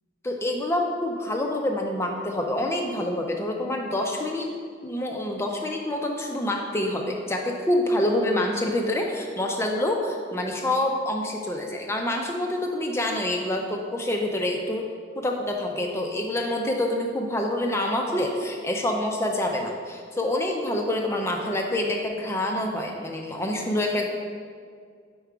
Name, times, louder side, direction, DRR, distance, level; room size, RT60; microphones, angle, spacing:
voice 1, 0.2-4.5 4.8-14.9 15.1-24.1, left 1 dB, 15° left, 1 dB, 0.4 m, -27 dB
4.6 x 4.5 x 4.9 m, 2.1 s
head